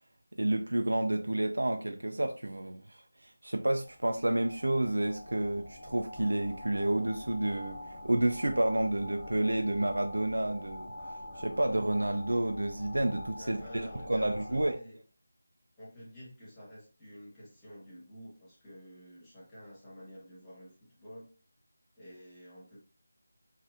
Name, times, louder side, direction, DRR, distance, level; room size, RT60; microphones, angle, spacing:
voice 1, 0.4-10.9 11.4-14.7, right 1 dB, 85° right, 0.3 m, -30 dB
sound 1, 3.7-14.8, left 1 dB, 35° left, 1.6 m, -45 dB
voice 2, 13.4-15.0 15.8-21.3 22.0-22.8, equal, 5° left, 1.0 m, -50 dB
4.2 x 2.5 x 2.4 m
figure-of-eight pair, 165°, 0 cm